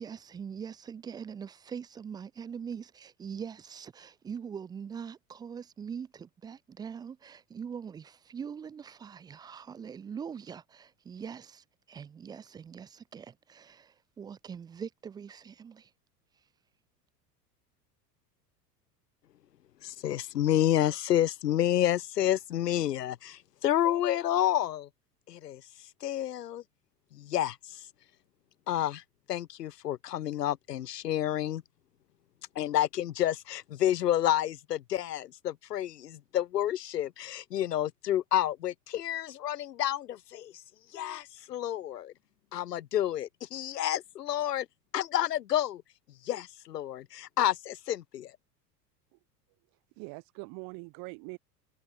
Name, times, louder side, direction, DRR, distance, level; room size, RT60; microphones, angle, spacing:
voice 1, 0.0-15.9, right 7 dB, 10° right, 0.4 m, -42 dB
voice 2, 19.8-24.9 25.3-25.6 26.0-26.6 27.1-27.8 28.7-29.0 29.3-31.6 32.6-40.5 40.9-42.1 42.5-44.7 44.9-45.8 46.2-48.3, left 12 dB, 75° left, 0.7 m, -29 dB
voice 3, 50.0-51.4, right 33 dB, 45° right, 2.2 m, -43 dB
figure-of-eight pair, 80°, 48 cm